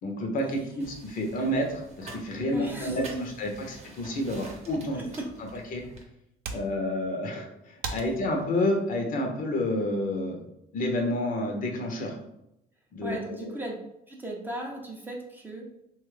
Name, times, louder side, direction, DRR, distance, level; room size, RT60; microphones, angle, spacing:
voice 1, 0.0-5.0 5.5-5.8 6.5-10.4 10.7-12.2 12.9-13.5, left 1 dB, 55° left, 2 dB, 0.7 m, -29 dB
sound 1, 0.8-6.0, right 2 dB, 40° right, 0.8 m, -47 dB
voice 2, 2.5-3.2 4.9-5.3 13.0-13.8 14.1-15.7, right 1 dB, 10° right, -1 dB, 0.6 m, -36 dB
sound 2, 6.2-10.4, right 4 dB, 65° right, 0.5 m, -43 dB
2.9 x 2.3 x 3.2 m, 0.83 s
cardioid pair, 110°, 17 cm